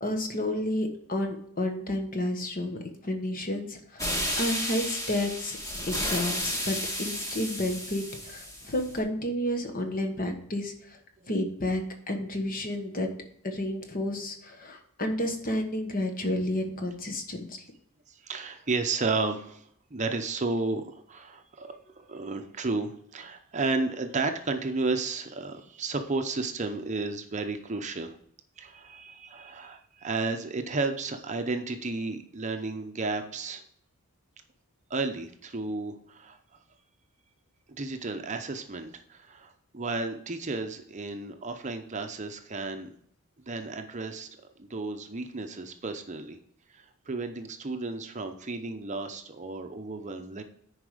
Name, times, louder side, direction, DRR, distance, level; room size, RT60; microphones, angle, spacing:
voice 1, 0.0-4.0 4.4-5.6 5.9-11.0 11.3-13.1 13.4-17.6, left 1 dB, 40° left, 5 dB, 1.3 m, -31 dB
sound 1, 4.0-9.0, left 1 dB, 15° left, 1.7 m, -32 dB
voice 2, 18.1-28.2 28.6-33.6 34.9-36.6 37.8-42.9 43.5-46.4 46.7-50.4, right 3 dB, 35° right, 6 dB, 0.7 m, -33 dB
9.9 x 4.9 x 5.0 m, 0.65 s
head